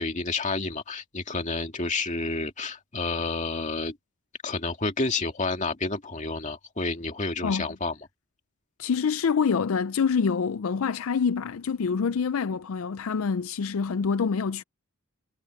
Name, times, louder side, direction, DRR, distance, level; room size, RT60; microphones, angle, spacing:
voice 1, 0.0-4.0 4.4-7.9, left 3 dB, 35° left, 2.4 m, -30 dB
voice 2, 8.8-14.6, left 6 dB, 75° left, 0.4 m, -26 dB
head